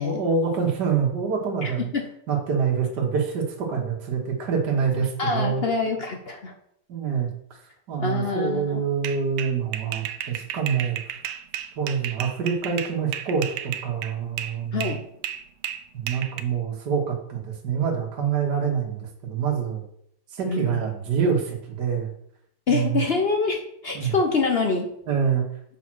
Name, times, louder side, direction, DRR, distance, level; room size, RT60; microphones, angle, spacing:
voice 1, 0.0-1.9 2.3-5.6 6.9-7.3 7.9-11.0 11.8-15.0 15.9-19.8 20.3-22.1 22.7-23.0 23.9-24.1 25.1-25.5, right 6 dB, 55° right, -1 dB, 2.0 m, -26 dB
voice 2, 1.6-2.1 5.2-6.5 8.0-8.8 14.7-15.0 20.5-20.8 22.7-24.9, left 4 dB, 65° left, 4 dB, 0.6 m, -25 dB
sound 1, 9.0-14.6 14.8-16.4, right 10 dB, 85° right, 1.6 m, -33 dB
7.5 x 5.2 x 6.2 m, 0.71 s
omnidirectional pair, 2.3 m